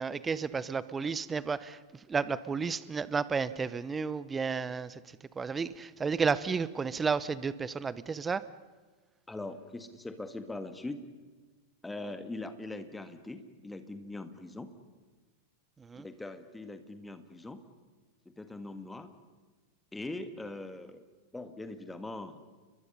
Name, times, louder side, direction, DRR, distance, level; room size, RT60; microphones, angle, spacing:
voice 1, 0.0-5.0 5.3-8.4 15.8-16.1, right 5 dB, 15° right, 17 dB, 0.8 m, -32 dB
voice 2, 9.3-11.0 11.8-14.7 16.0-17.6 18.3-19.1 19.9-21.0 21.3-22.4, left 2 dB, 10° left, 9 dB, 1.8 m, -41 dB
29.5 x 22.5 x 5.6 m, 1.3 s
figure-of-eight pair, 90°, 0 cm